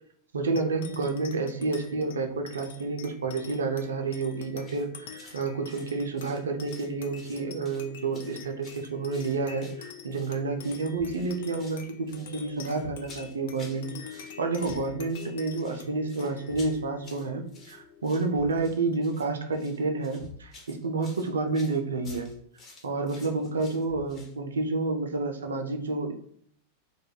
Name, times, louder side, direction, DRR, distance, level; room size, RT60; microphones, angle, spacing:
voice 1, 0.3-22.3 22.8-26.1, right 3 dB, 70° right, 5 dB, 0.3 m, -30 dB
sound 1, 0.6-19.4, left 8 dB, 55° left, 0.3 m, -46 dB
sound 2, 4.6-4.9 5.2-5.4 5.7-6.9 7.1-7.9 8.1-10.3 10.6-10.8 11.1-11.8 12.1-13.8 14.1-14.8 15.1-24.3, left 2 dB, 30° left, 0.8 m, -52 dB
Thump thud, 10.9-11.3 12.8-13.1 14.6-15.0 16.5-16.8 18.3-18.7 20.2-20.5 22.0-22.4 23.9-24.2, left 4 dB, 75° left, 0.8 m, -46 dB
2.3 x 2.1 x 3.1 m, 0.64 s
figure-of-eight pair, 90°, 0 cm